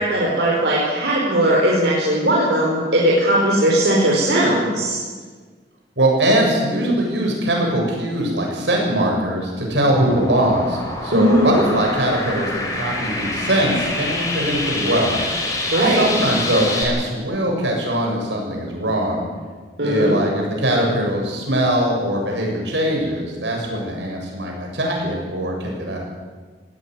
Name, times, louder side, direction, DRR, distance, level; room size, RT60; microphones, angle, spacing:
voice 1, 0.0-5.0 11.1-11.6 15.7-16.1 19.8-20.1, right 1 dB, 75° right, -4 dB, 4.8 m, -18 dB
voice 2, 6.0-15.2 15.8-19.2 19.8-26.0, right 1 dB, 90° right, 0 dB, 7.5 m, -21 dB
sound 1, 9.9-16.8, left 2 dB, 20° left, 4.8 m, -26 dB
19.0 x 16.5 x 9.6 m, 1.5 s
head